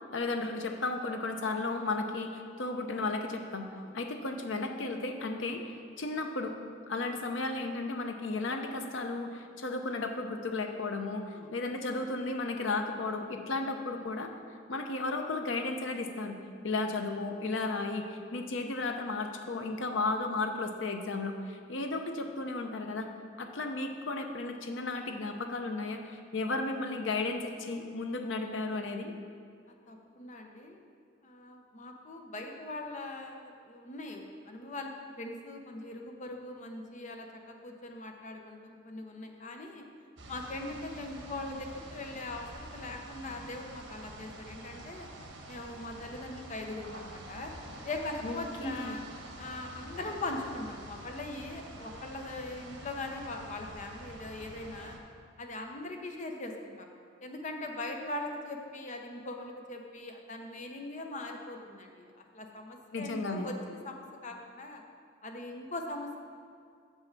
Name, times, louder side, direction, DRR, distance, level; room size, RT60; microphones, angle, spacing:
voice 1, 0.1-3.7 3.9-6.5 6.9-14.3 14.7-23.1 23.4-29.1 48.2-49.0 62.9-63.5, left 3 dB, 85° left, 5 dB, 0.7 m, -34 dB
voice 2, 29.7-30.8 31.2-39.8 40.3-45.1 45.5-47.5 47.8-49.0 49.4-55.0 55.4-56.9 57.2-64.8 65.2-66.2, left 2 dB, 40° left, 3 dB, 0.7 m, -41 dB
sound 1, 40.2-55.0, right 1 dB, 85° right, 1.0 m, -47 dB
7.1 x 5.6 x 5.9 m, 2.3 s
head